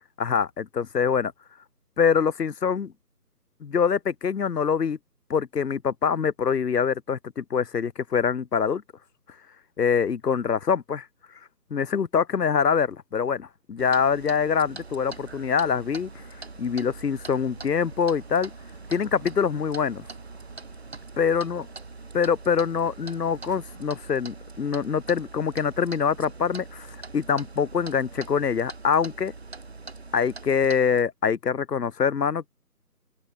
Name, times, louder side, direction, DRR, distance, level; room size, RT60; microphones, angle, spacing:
voice 1, 0.2-1.3 2.0-2.9 3.6-5.0 5.3-8.8 9.8-11.1 11.7-16.1 16.6-18.5 18.9-20.0 21.2-21.6 22.1-29.3 30.1-32.5, left 6 dB, 75° left, 0.9 m, -24 dB
Clock, 13.8-31.0, right 3 dB, 40° right, 4.7 m, -42 dB
sound 1, 15.1-24.0, right 5 dB, 15° right, 2.7 m, -54 dB
open air
figure-of-eight pair, 175°, 48 cm